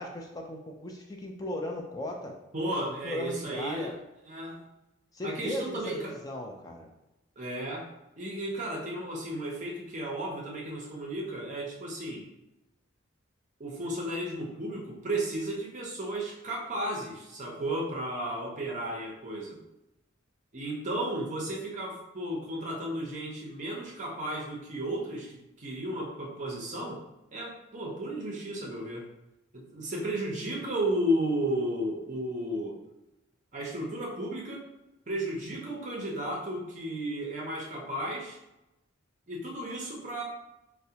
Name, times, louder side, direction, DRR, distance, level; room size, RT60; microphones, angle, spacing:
voice 1, 0.0-2.4 3.0-4.0 5.1-6.9, left 1 dB, 20° left, 1 dB, 0.3 m, -37 dB
voice 2, 2.5-4.0 4.3-4.6 5.2-6.2 7.4-7.9 8.2-12.2 13.6-19.6 20.5-27.0 27.3-29.1 29.5-32.8 33.5-34.7 35.1-38.4 39.3-40.2, right 1 dB, 35° right, -2 dB, 0.5 m, -34 dB
4.6 x 2.0 x 2.7 m, 0.95 s
head